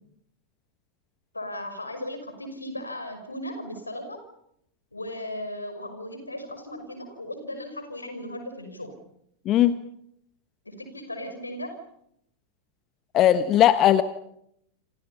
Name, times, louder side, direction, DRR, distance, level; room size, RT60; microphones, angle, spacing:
voice 1, 1.3-4.2 4.9-9.0 10.7-11.8, left 1 dB, 80° left, 8 dB, 5.7 m, -36 dB
voice 2, 13.1-14.0, left 11 dB, 35° left, 13 dB, 1.4 m, -18 dB
28.5 x 27.5 x 5.7 m, 0.73 s
figure-of-eight pair, 90°, 0 cm